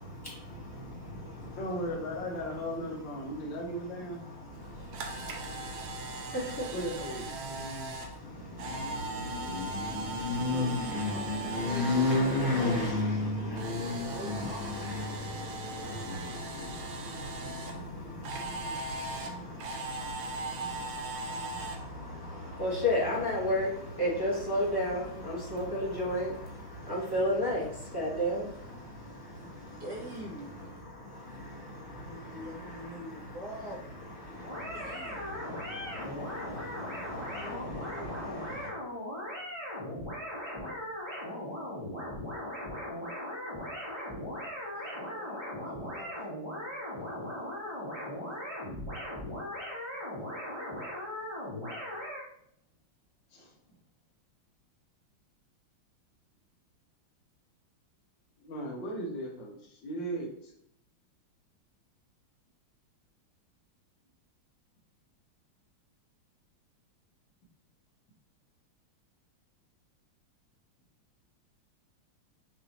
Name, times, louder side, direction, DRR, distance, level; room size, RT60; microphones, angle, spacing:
voice 1, 0.0-1.8 2.3-2.7 3.2-3.6 4.0-6.7 7.4-29.8 30.4-38.7, left 1 dB, 15° left, -7 dB, 1.0 m, -34 dB
voice 2, 1.6-4.2 6.7-7.3 53.3-53.5 58.4-60.5, equal, 70° left, 0 dB, 1.4 m, -36 dB
Camera, 4.6-12.9 13.2-17.7 18.2-21.8, right 2 dB, 85° right, 1.6 m, -39 dB
voice 3, 7.2-8.0 10.5-12.1 13.4-14.6 29.8-30.5 32.1-34.0 34.7-35.4 37.0-38.1 44.7-45.4 45.7-46.2, equal, 60° right, -2 dB, 1.2 m, -45 dB
sound 1, 34.4-52.2, left 1 dB, 20° right, 0.9 m, -38 dB
6.9 x 2.7 x 2.8 m, 0.72 s
omnidirectional pair, 2.2 m